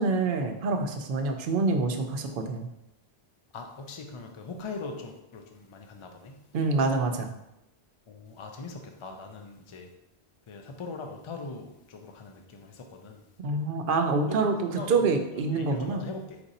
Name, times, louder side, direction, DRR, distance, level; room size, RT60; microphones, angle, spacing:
voice 1, 0.0-2.7 6.5-7.3 13.4-16.0, right 3 dB, 60° right, 5 dB, 0.7 m, -26 dB
voice 2, 3.5-6.5 8.1-9.9 10.5-13.2 14.3-14.9 15.4-16.4, left 3 dB, 50° left, 4 dB, 0.3 m, -41 dB
4.5 x 2.6 x 4.0 m, 0.88 s
omnidirectional pair, 1.1 m